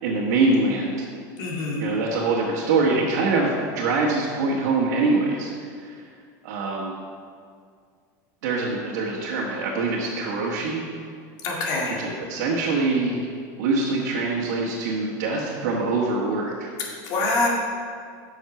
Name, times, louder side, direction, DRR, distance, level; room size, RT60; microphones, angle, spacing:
voice 1, 0.0-1.1 1.8-6.1 6.4-6.9 8.4-10.8 12.0-13.3 13.6-16.7, right 3 dB, 80° right, -4 dB, 1.4 m, -24 dB
voice 2, 1.4-1.9 11.4-12.0 17.0-17.5, left 2 dB, 50° left, -2 dB, 2.1 m, -25 dB
7.7 x 6.5 x 5.8 m, 2.1 s
supercardioid pair, 150°, 9 cm